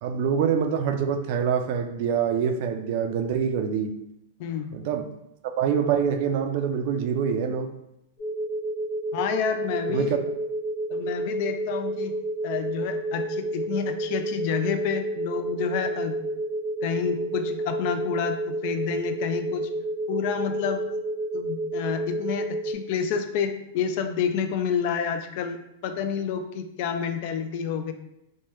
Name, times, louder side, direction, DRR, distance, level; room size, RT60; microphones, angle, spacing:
voice 1, 0.0-3.9 4.7-5.1 5.4-7.7 9.9-10.2, right 7 dB, 55° right, 6 dB, 0.4 m, -25 dB
voice 2, 4.4-4.7 9.1-10.2 10.9-12.1 12.4-16.2 16.8-19.7 20.1-20.9 21.3-27.9, left 7 dB, 55° left, 7 dB, 0.3 m, -29 dB
sound 1, 8.2-22.7, right 1 dB, 90° left, 1.2 m, -30 dB
3.0 x 2.1 x 3.1 m, 0.85 s
hypercardioid pair, 120°, 0 cm